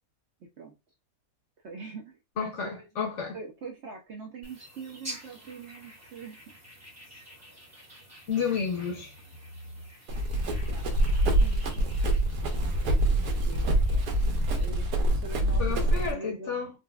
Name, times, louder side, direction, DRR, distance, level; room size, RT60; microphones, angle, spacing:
voice 1, 0.4-0.8 1.6-2.9 3.3-6.4 10.7-10.8 11.4-11.9 12.4-14.1 14.4-16.7, right 4 dB, 65° right, 0.7 m, -43 dB
voice 2, 2.4-3.4 8.3-9.1 15.6-16.7, left 6 dB, 60° left, 0.9 m, -31 dB
sound 1, 4.4-14.7, right 1 dB, 15° right, 0.6 m, -49 dB
Run, 10.1-16.1, right 1 dB, 85° right, 1.3 m, -25 dB
3.9 x 2.2 x 2.3 m
omnidirectional pair, 1.7 m